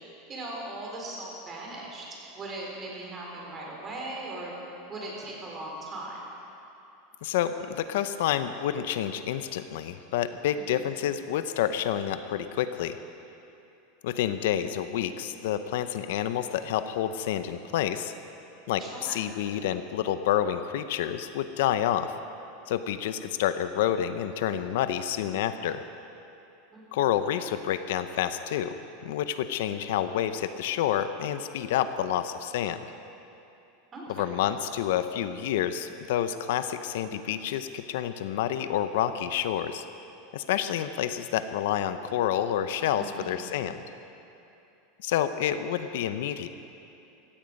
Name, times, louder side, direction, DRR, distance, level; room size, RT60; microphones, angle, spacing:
voice 1, 0.3-2.1 2.3-4.5 4.9-6.2 10.7-11.0 18.8-19.3 26.7-27.0 33.9-34.4 42.9-43.5, right 2 dB, 25° right, -2 dB, 4.0 m, -39 dB
voice 2, 7.2-13.0 14.0-18.1 18.7-22.1 22.7-25.8 26.9-28.7 29.0-32.8 34.2-39.8 40.3-43.8 45.0-46.5, left 10 dB, 75° left, 11 dB, 0.7 m, -28 dB
16.5 x 14.5 x 5.3 m, 2.8 s
supercardioid pair, 145°, 0 cm